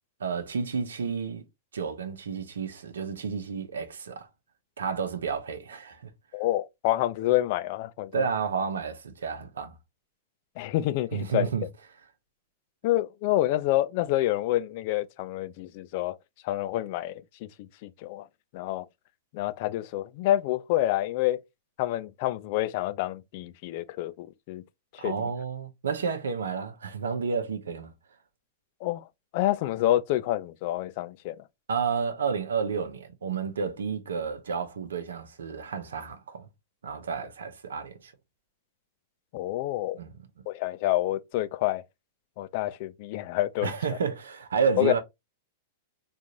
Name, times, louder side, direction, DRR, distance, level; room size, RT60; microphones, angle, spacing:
voice 1, 0.2-1.4 1.7-4.3 4.8-6.1 8.1-9.8 11.1-11.6 25.0-27.9 31.7-36.5 36.8-38.1 39.9-40.1 43.6-45.0, right 6 dB, 85° right, 0.7 m, -31 dB
voice 2, 6.3-8.2 10.6-11.5 12.8-16.2 16.4-18.3 18.5-18.9 19.3-21.4 21.8-24.6 24.9-25.3 28.8-29.0 29.3-31.4 39.3-40.0 40.5-41.8 42.4-44.0 44.8-44.9, left 15 dB, 55° left, 0.4 m, -28 dB
3.7 x 2.5 x 2.9 m
hypercardioid pair, 110°, 0 cm